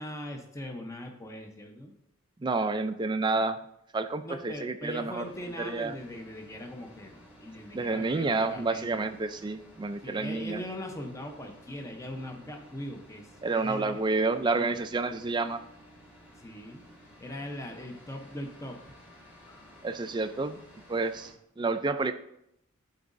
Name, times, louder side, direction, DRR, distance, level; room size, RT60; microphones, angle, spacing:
voice 1, 0.0-1.9 4.2-9.1 10.0-14.0 14.5-14.7 15.1-15.2 16.4-16.8 17.2-18.8 19.5-19.6, left 1 dB, 15° left, 3 dB, 0.6 m, -40 dB
voice 2, 2.4-3.6 3.9-5.2 5.6-5.9 7.7-10.6 13.4-15.6 19.8-20.6 20.9-22.1, right 3 dB, 20° right, 9 dB, 0.3 m, -29 dB
sound 1, 5.2-21.3, equal, 80° left, 2.4 m, -54 dB
11.5 x 4.0 x 2.5 m, 0.79 s
head